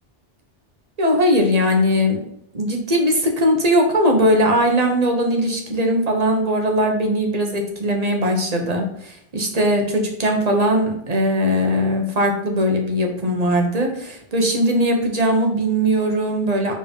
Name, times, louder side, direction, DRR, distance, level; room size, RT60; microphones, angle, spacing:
voice 1, 1.0-2.2 2.5-16.7, equal, 35° right, 2 dB, 1.1 m, -19 dB
4.7 x 3.8 x 5.3 m, 0.71 s
omnidirectional pair, 1.2 m